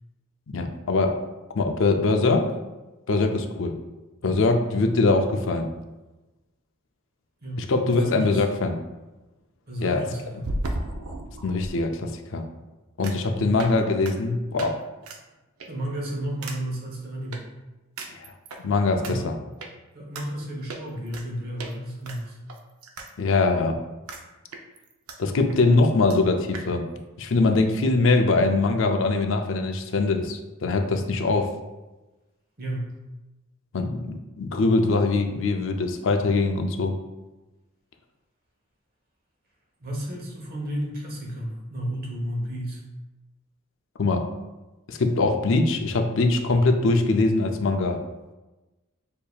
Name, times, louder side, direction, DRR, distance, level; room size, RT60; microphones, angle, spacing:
voice 1, 0.5-1.2 1.5-2.5 3.1-3.8 4.2-5.7 7.6-8.8 9.8-10.1 10.3-10.4 11.4-12.4 13.0-14.8 18.1-18.2 18.6-19.4 23.2-23.8 25.2-26.9 27.2-31.5 33.7-37.0 44.0-44.3 44.9-48.0, left 3 dB, 60° left, 5 dB, 0.5 m, -22 dB
voice 2, 7.4-8.4 9.7-10.5 13.3-13.6 15.7-17.5 19.0-19.2 19.9-22.4 32.6-32.9 39.8-42.8, equal, 45° right, -1 dB, 1.0 m, -32 dB
sound 1, 10.4-11.7 13.0-13.3 13.6-13.8 14.0-14.1 14.6-14.7 15.0-15.2 15.6-15.9 16.4-16.6 17.3-17.4 18.0-18.6 19.0-19.1 19.6-19.7 20.1-20.3 20.7-21.3 21.6-21.7 22.0-23.1 23.4-23.5 24.1-24.2 24.5-25.2 25.5-25.6 25.8-25.9 26.1-26.2 26.5-26.7, right 2 dB, 80° right, 0.5 m, -34 dB
6.6 x 2.8 x 2.3 m, 1.1 s
head